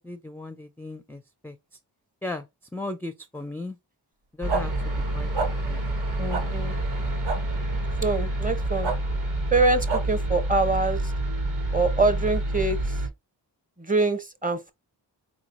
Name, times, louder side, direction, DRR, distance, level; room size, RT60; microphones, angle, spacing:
voice 1, 0.0-1.6 2.2-2.4 2.7-3.8 4.4-4.7 5.1-5.8, left 2 dB, 5° left, 0.4 m, -36 dB
sound 1, 4.4-13.1, right 1 dB, 45° right, 1.3 m, -28 dB
sound 2, 4.5-4.6 5.3-5.5 6.3-6.4 7.3-7.4 8.8-9.0 9.9-10.0, right 4 dB, 75° right, 0.9 m, -26 dB
voice 2, 6.2-6.8 8.0-8.9 9.5-11.0 11.7-12.8 13.9-14.7, right 3 dB, 20° right, 0.7 m, -24 dB
3.9 x 3.1 x 2.5 m
cardioid pair, 55°, 43 cm